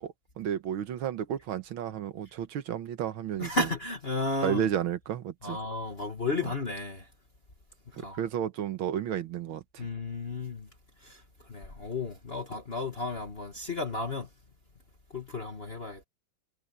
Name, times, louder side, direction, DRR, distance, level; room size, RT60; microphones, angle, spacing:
voice 1, 0.0-3.5 4.4-5.6 7.9-9.9, right 9 dB, 80° right, 1.9 m, -32 dB
voice 2, 3.4-4.7 5.4-7.1 8.0-8.2 9.8-10.7 11.0-11.2 11.5-14.3 15.1-16.0, left 3 dB, 30° left, 2.2 m, -33 dB
omnidirectional pair, 2.2 m